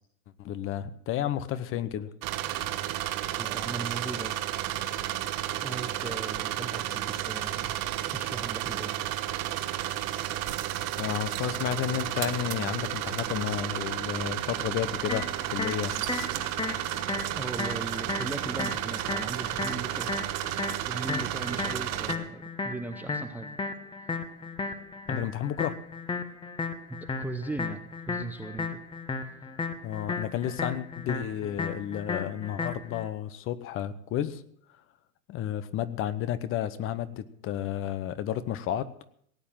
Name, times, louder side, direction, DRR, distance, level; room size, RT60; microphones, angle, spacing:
voice 1, 0.4-2.1 11.0-15.9 25.1-25.7 29.8-34.4 35.3-38.9, left 11 dB, 30° left, 14 dB, 0.9 m, -32 dB
sound 1, 2.2-22.2, right 13 dB, 40° right, 1.3 m, -32 dB
voice 2, 3.4-4.3 5.6-8.9 17.3-20.1 20.8-23.5 27.0-28.8, right 2 dB, 5° right, 8 dB, 0.7 m, -38 dB
sound 2, 15.1-33.1, left 4 dB, 10° left, 1.2 m, -35 dB
18.0 x 8.5 x 7.4 m, 0.66 s
hypercardioid pair, 115°, 43 cm